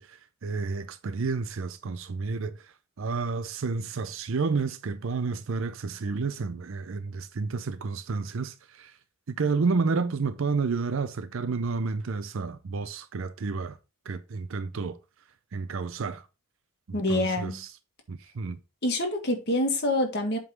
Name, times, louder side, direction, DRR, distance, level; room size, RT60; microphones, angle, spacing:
voice 1, 0.0-8.9 9.3-13.8 14.1-15.0 15.5-16.2 17.1-17.7 18.1-18.6, right 4 dB, 60° right, 0.5 m, -30 dB
voice 2, 16.9-17.6 18.8-20.4, left 1 dB, 50° left, 1.8 m, -26 dB
8.0 x 3.8 x 4.6 m
head